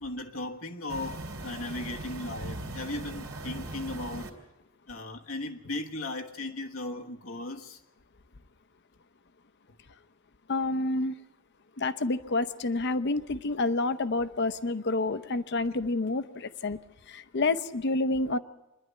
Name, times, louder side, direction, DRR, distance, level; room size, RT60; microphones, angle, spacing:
voice 1, 0.0-4.3 4.9-7.8, left 2 dB, 90° left, 1.3 m, -37 dB
sound 1, 0.9-4.3, right 2 dB, 85° right, 2.6 m, -39 dB
voice 2, 10.5-11.1 11.8-16.8 17.1-18.4, left 2 dB, 55° left, 0.7 m, -28 dB
25.5 x 11.0 x 9.5 m
head